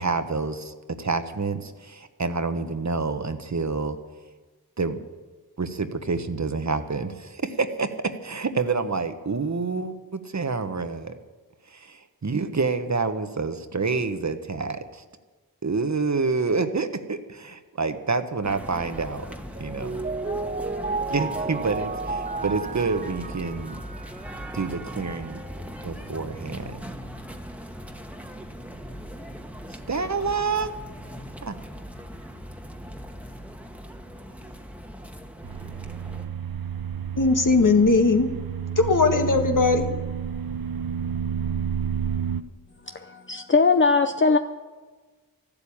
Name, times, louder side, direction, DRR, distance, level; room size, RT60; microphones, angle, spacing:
voice 1, 0.0-4.0 4.8-5.0 5.6-11.2 11.7-15.0 15.6-19.3 19.6-20.0 21.1-23.8 24.5-25.4 25.8-26.8 29.9-30.7 31.4-31.5, right 4 dB, 50° right, 9 dB, 1.2 m, -28 dB
sound 1, 18.4-36.3, equal, 5° right, 1.4 m, -39 dB
Mallet percussion, 19.6-24.5, right 3 dB, 25° right, 0.7 m, -32 dB
sound 2, 35.4-42.4, right 8 dB, 75° right, 0.8 m, -30 dB
voice 2, 37.2-38.3 38.8-39.9, left 3 dB, 60° left, 5 dB, 1.7 m, -19 dB
voice 3, 42.9-44.4, left 4 dB, 35° left, 7 dB, 0.6 m, -20 dB
13.5 x 12.0 x 8.6 m, 1.3 s
wide cardioid pair, 70°, 35 cm